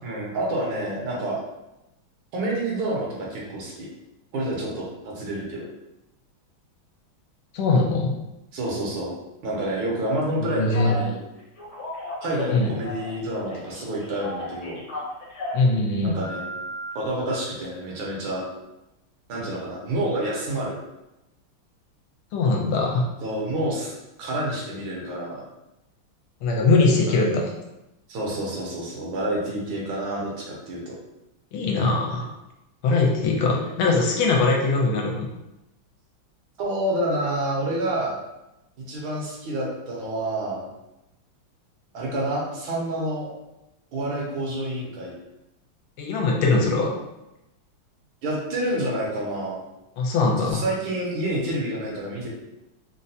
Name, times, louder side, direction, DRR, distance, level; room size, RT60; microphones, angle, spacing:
voice 1, 0.0-1.4 2.3-3.9 4.3-5.6 8.5-9.1 9.4-11.2 12.2-14.8 16.0-16.5 16.9-18.4 19.3-20.7 23.2-23.9 24.2-25.4 27.1-27.2 28.1-31.0 36.6-38.2 38.9-40.7 41.9-43.3 43.9-45.1 48.2-49.6 50.4-52.3, right 1 dB, 75° right, -3 dB, 1.6 m, -28 dB
voice 2, 7.5-8.1 10.6-11.0 12.5-12.7 15.5-16.1 22.3-23.1 26.4-27.4 31.5-32.3 32.8-35.3 46.0-46.9 50.0-50.6, left 3 dB, 80° left, 0 dB, 1.4 m, -21 dB
Telephone, 10.7-11.1 11.6-13.2 13.5-15.7 16.2-16.9, left 1 dB, 60° left, 1.3 m, -34 dB
3.9 x 2.1 x 2.7 m, 0.93 s
omnidirectional pair, 2.3 m